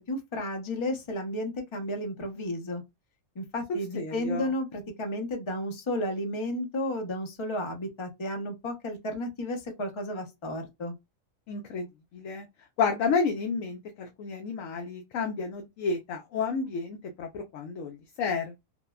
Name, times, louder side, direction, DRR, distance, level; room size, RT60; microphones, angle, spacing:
voice 1, 0.1-2.8 3.4-10.9, left 1 dB, 30° left, 0.5 m, -33 dB
voice 2, 3.9-4.4 11.5-11.9 12.1-12.4 12.8-18.6, left 5 dB, 70° left, 1.0 m, -31 dB
3.2 x 2.2 x 2.2 m
omnidirectional pair, 1.4 m